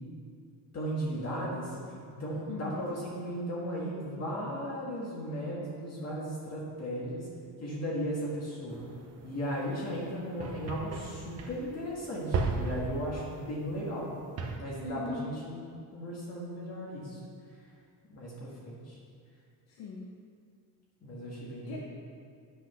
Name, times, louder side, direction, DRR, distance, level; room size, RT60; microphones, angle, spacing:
voice 1, 0.7-1.8 2.2-7.3 7.6-8.8 9.2-14.1 14.6-15.6 15.9-17.2 18.1-19.0 21.0-21.8, equal, 35° left, -5 dB, 1.8 m, -36 dB
voice 2, 2.5-2.9 14.8-15.4 19.7-20.1 21.6-21.8, left 3 dB, 85° left, -2 dB, 1.2 m, -39 dB
sound 1, 8.7-14.6, right 4 dB, 35° right, 0.9 m, -37 dB
10.5 x 6.3 x 5.6 m, 2.3 s
cardioid pair, 180°, 43 cm